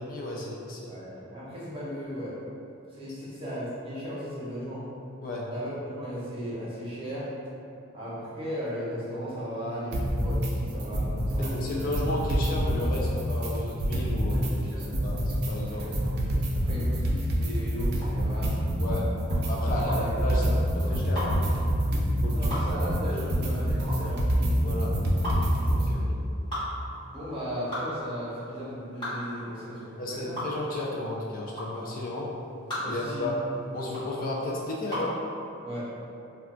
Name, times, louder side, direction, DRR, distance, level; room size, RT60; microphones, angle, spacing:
voice 1, 0.0-0.9 5.2-5.5 11.4-16.2 18.8-19.1 19.5-21.4 22.2-23.5 24.6-25.0 25.9-26.0 30.0-32.3 32.8-33.5 33.7-35.2, left 1 dB, 45° left, -3 dB, 0.3 m, -33 dB
voice 2, 0.9-2.4 3.0-4.8 5.5-7.3 7.9-11.5 14.2-14.9 15.7-15.9 16.6-18.6 19.7-20.1 20.8-21.0 22.3-24.3 25.6-26.1 27.1-30.4 32.8-33.3 35.6-35.9, equal, 25° right, -8 dB, 0.8 m, -36 dB
sound 1, 9.9-10.5 10.8-11.5 11.8-14.5 14.8-25.9, equal, 50° right, 0.4 m, -26 dB
sound 2, 17.9-35.2, left 1 dB, 25° left, 0.8 m, -37 dB
2.3 x 2.2 x 3.7 m, 2.6 s
head